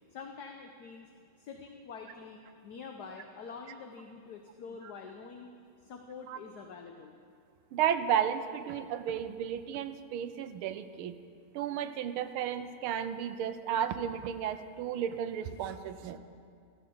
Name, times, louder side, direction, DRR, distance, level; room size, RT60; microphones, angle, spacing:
voice 1, 0.1-1.1 1.4-5.5 5.8-7.2, left 5 dB, 55° left, 4 dB, 1.3 m, -46 dB
voice 2, 7.7-11.1 11.5-16.2, right 9 dB, 85° right, 9 dB, 1.6 m, -33 dB
15.0 x 13.5 x 7.0 m, 2.2 s
omnidirectional pair, 2.3 m